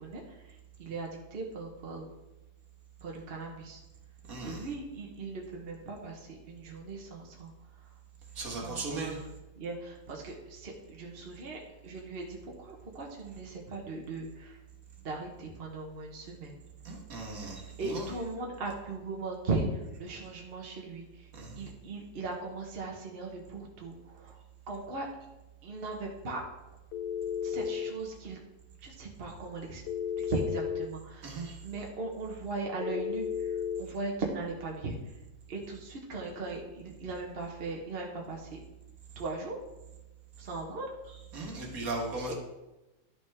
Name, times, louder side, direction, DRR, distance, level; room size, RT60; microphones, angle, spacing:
voice 1, 0.0-2.1 3.0-3.8 4.4-7.9 8.5-9.1 9.6-14.6 15.0-16.6 17.8-21.3 21.5-24.4 24.7-25.1 25.6-26.4 27.4-28.4 28.8-29.8 30.2-35.2 35.5-38.6 39.1-39.6 40.4-40.9 42.3-42.4, right 3 dB, 40° right, 0 dB, 1.3 m, -38 dB
voice 2, 4.3-4.7 8.4-9.2 16.9-18.1 21.3-21.6 31.2-31.6 41.1-42.3, right 3 dB, 65° right, 0 dB, 2.0 m, -37 dB
Telephone, 26.9-27.9 29.9-30.9 32.8-33.8, left 8 dB, 75° left, 1.0 m, -33 dB
11.5 x 6.0 x 3.5 m, 1.0 s
omnidirectional pair, 1.6 m